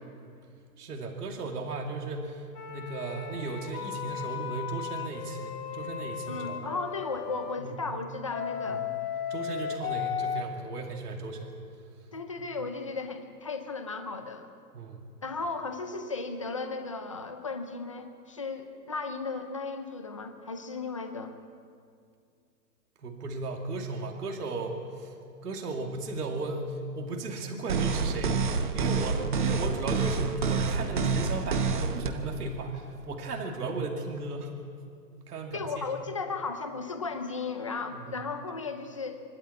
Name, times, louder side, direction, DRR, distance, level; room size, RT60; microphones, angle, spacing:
voice 1, 0.8-6.7 7.6-7.8 8.6-8.7 9.3-11.6 12.4-12.5 14.7-15.1 23.0-25.1 25.4-34.5 35.3-35.9 37.9-38.0, right 3 dB, 65° right, 1 dB, 2.6 m, -36 dB
sound 1, 2.5-7.6 8.3-10.4, left 8 dB, 65° left, 1.6 m, -35 dB
voice 2, 6.3-8.8 12.1-14.5 15.2-21.3 35.5-39.2, left 4 dB, 20° left, 6 dB, 0.5 m, -35 dB
sound 2, 27.7-32.1, right 4 dB, 30° right, 0.8 m, -28 dB
25.0 x 12.5 x 8.5 m, 2.3 s
hypercardioid pair, 175°, 49 cm